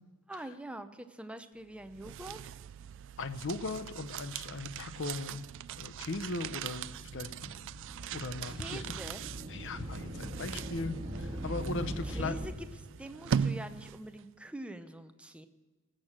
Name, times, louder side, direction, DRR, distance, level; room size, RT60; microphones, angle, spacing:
voice 1, 0.3-2.4 8.4-9.2 12.0-12.5 13.0-15.5, right 1 dB, 5° right, 9 dB, 0.6 m, -44 dB
sound 1, 1.7-14.2, right 7 dB, 60° right, 0.3 m, -40 dB
voice 2, 3.2-5.4 5.8-7.7 8.1-8.9 9.5-12.3, left 3 dB, 55° left, 11 dB, 0.8 m, -38 dB
sound 2, 6.0-12.5, right 1 dB, 25° right, 1.6 m, -41 dB
18.5 x 6.6 x 7.4 m, 1.4 s
head